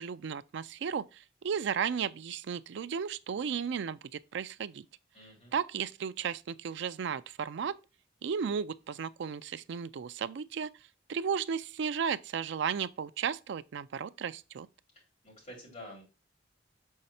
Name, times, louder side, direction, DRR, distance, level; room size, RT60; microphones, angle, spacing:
voice 1, 0.0-4.8 5.5-7.7 8.2-10.7 11.1-14.7, right 7 dB, 65° right, 0.4 m, -34 dB
voice 2, 5.1-5.5 15.2-16.0, left 1 dB, 40° left, 4.0 m, -48 dB
6.5 x 4.1 x 4.2 m
head